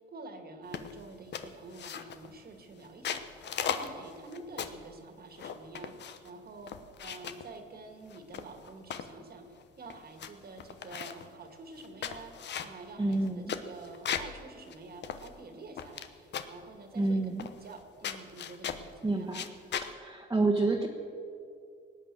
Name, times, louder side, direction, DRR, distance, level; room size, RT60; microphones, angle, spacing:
voice 1, 0.1-6.7 7.0-9.5 9.8-12.3 12.6-17.3 17.6-19.3, right 3 dB, 50° right, 5 dB, 2.0 m, -48 dB
sound 1, 0.7-1.0 1.3-2.3 2.8-4.9 5.4-6.3 6.7-7.5 8.1-9.1 9.6-9.7 9.9-10.3 10.6-11.3 11.8-14.4 14.7-14.8 15.0-16.1 16.3-16.6 17.4-17.8 18.0-18.9 19.3-19.9, left 8 dB, 60° left, 1.0 m, -37 dB
voice 2, 13.0-13.5 16.9-17.5 19.0-19.5 19.8-20.9, right 2 dB, 15° right, -1 dB, 1.5 m, -29 dB
18.0 x 9.2 x 7.6 m, 2.4 s
cardioid pair, 90°, 20 cm